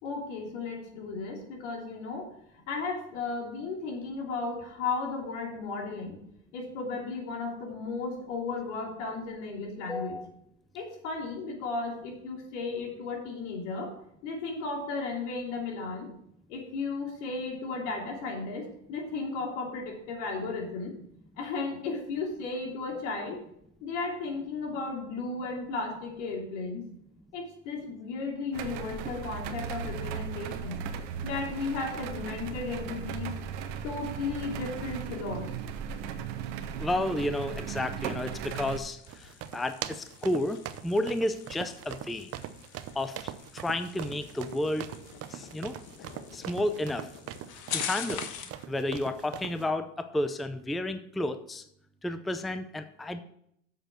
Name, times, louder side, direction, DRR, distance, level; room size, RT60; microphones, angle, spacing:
voice 1, 0.0-2.3 2.7-6.2 6.5-10.2 10.7-13.9 14.2-16.1 16.5-20.9 21.4-23.4 23.8-26.9 27.3-30.8 31.2-33.3 33.8-35.5, left 3 dB, 80° left, 1 dB, 3.1 m, -35 dB
voice 2, 9.9-10.3 36.8-40.6 40.8-42.3 42.9-44.9 45.3-45.8 46.3-47.1 47.7-48.3 48.7-51.6 52.0-53.2, left 1 dB, ahead, 10 dB, 0.5 m, -31 dB
sound 1, 28.5-38.8, right 7 dB, 80° right, 1.1 m, -37 dB
sound 2, 37.9-48.6, left 8 dB, 55° left, 1.3 m, -43 dB
sound 3, 39.1-49.6, right 11 dB, 40° right, 0.7 m, -42 dB
7.7 x 6.8 x 6.2 m, 0.73 s
supercardioid pair, 105°, 36 cm